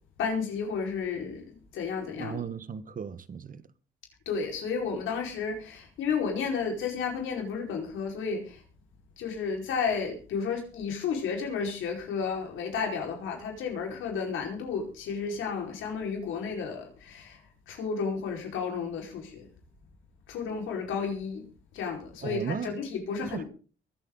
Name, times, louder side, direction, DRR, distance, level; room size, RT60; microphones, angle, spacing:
voice 1, 0.2-2.4 4.2-8.6 9.2-17.4 17.7-19.5 20.3-21.5 21.7-23.4, left 5 dB, 85° left, 4.8 m, -32 dB
voice 2, 2.2-3.6 22.2-22.7 23.2-23.4, right 6 dB, 45° right, 1.3 m, -35 dB
23.5 x 8.5 x 3.9 m
cardioid pair, 90°, 20 cm